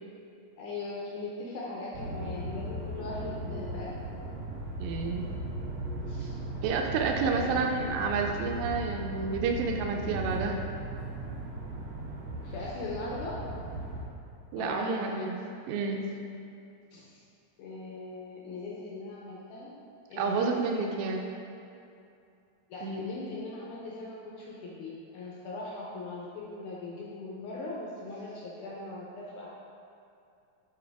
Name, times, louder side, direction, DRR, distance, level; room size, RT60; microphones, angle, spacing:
voice 1, 0.6-3.9 6.1-6.4 7.3-7.6 12.4-13.4 14.6-15.2 16.9-17.2 17.6-19.7 20.1-21.1 22.7-29.5, left 2 dB, 75° left, -5 dB, 2.0 m, -40 dB
sound 1, 1.9-14.0, right 1 dB, 60° right, 2.0 m, -37 dB
voice 2, 4.8-5.3 6.6-10.6 14.5-16.1 20.2-21.3 22.8-23.1, right 4 dB, 85° right, 2 dB, 2.4 m, -30 dB
8.4 x 4.5 x 3.4 m, 2.6 s
omnidirectional pair, 4.1 m